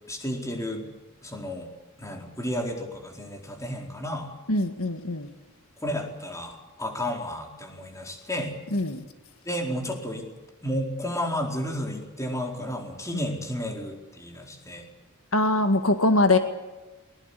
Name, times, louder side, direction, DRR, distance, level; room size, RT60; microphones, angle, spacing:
voice 1, 0.1-0.9 1.2-1.7 2.0-4.3 5.8-8.5 9.4-10.2 10.6-14.9, equal, 15° left, 2 dB, 4.4 m, -32 dB
voice 2, 4.5-5.3 8.7-9.0 15.3-16.4, left 2 dB, 65° left, 7 dB, 1.9 m, -22 dB
22.5 x 21.5 x 8.4 m, 1.1 s
head